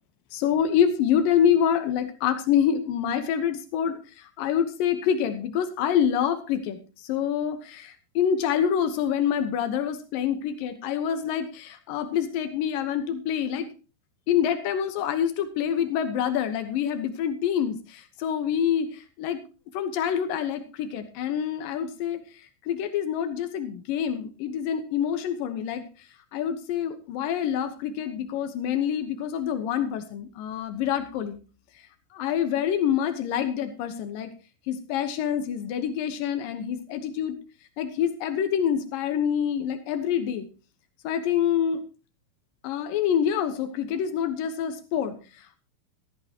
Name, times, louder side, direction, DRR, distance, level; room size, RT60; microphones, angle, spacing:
voice 1, 0.3-13.7 14.3-19.4 19.7-31.4 32.1-34.3 34.7-37.4 37.8-40.5 41.0-41.8 42.6-45.6, left 9 dB, 90° left, 8 dB, 1.9 m, -26 dB
14.0 x 13.5 x 2.9 m, 0.33 s
omnidirectional pair, 5.6 m